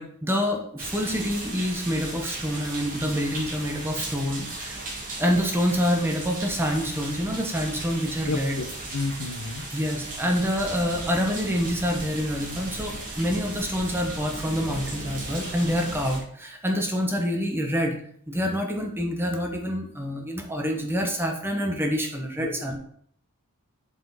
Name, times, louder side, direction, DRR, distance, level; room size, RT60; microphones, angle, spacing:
voice 1, 0.0-4.8 5.2-8.6 9.7-18.0 18.3-22.8, equal, 10° right, 2 dB, 1.0 m, -27 dB
sound 1, 0.8-16.2, right 2 dB, 40° right, 2.0 m, -36 dB
voice 2, 8.3-8.7 8.9-9.6 22.4-22.5, left 3 dB, 75° left, 8 dB, 0.7 m, -30 dB
7.3 x 4.3 x 4.1 m, 0.64 s
head